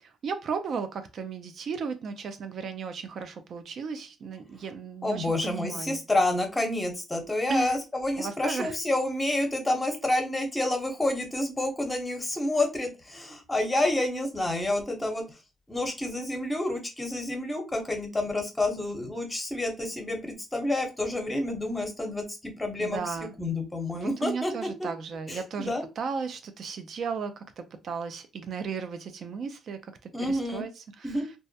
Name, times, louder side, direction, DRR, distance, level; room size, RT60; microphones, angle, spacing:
voice 1, 0.2-6.0 7.5-7.8 8.2-8.8 22.8-23.3 23.9-31.2, right 5 dB, 60° right, 0.3 m, -35 dB
voice 2, 5.0-15.2 15.7-24.9 25.3-25.8 30.1-30.6 31.0-31.2, left 1 dB, 15° left, 0.8 m, -29 dB
2.2 x 2.0 x 2.7 m
cardioid pair, 80°, 0 cm